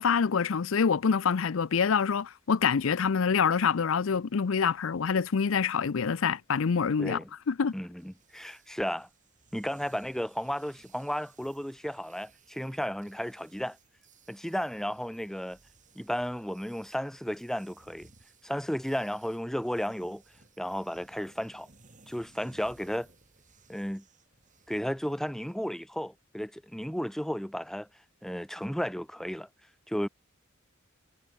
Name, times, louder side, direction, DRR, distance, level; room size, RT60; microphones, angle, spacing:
voice 1, 0.0-7.2 7.5-7.7, left 6 dB, 65° left, 0.5 m, -26 dB
voice 2, 7.0-7.3 7.7-9.1 9.5-13.8 14.3-15.6 16.0-18.1 18.4-20.2 20.6-21.7 22.1-23.1 23.7-24.0 24.7-27.9 28.2-29.5 29.9-30.1, equal, ahead, 1.0 m, -33 dB
sound 1, 8.0-25.5, right 4 dB, 35° right, 4.6 m, -61 dB
head